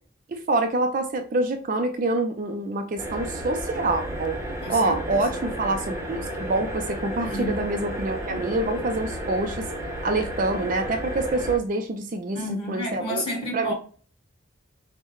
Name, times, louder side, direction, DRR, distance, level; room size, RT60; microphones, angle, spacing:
voice 1, 0.3-4.4 4.7-9.7 10.0-13.2 13.5-13.7, right 2 dB, 40° right, 0.4 m, -26 dB
sound 1, 3.0-11.6, right 1 dB, 15° right, 0.8 m, -32 dB
voice 2, 4.6-5.4 7.2-7.6 8.3-8.4 12.3-13.7, equal, 25° left, 1.7 m, -31 dB
5.4 x 2.1 x 3.0 m
head